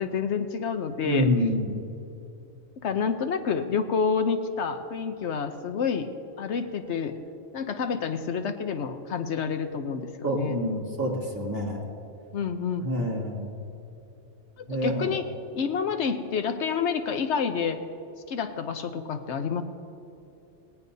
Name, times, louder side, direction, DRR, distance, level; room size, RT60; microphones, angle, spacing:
voice 1, 0.0-1.3 2.8-6.1 6.4-7.2 7.5-10.6 12.3-12.8 14.6-15.3 15.5-17.9 18.3-19.6, left 6 dB, 80° left, 8 dB, 1.1 m, -28 dB
voice 2, 1.0-1.8 10.2-11.8 12.8-13.5 14.7-15.1, equal, 15° right, -5 dB, 2.7 m, -27 dB
18.5 x 18.0 x 2.7 m, 2.8 s
omnidirectional pair, 1.2 m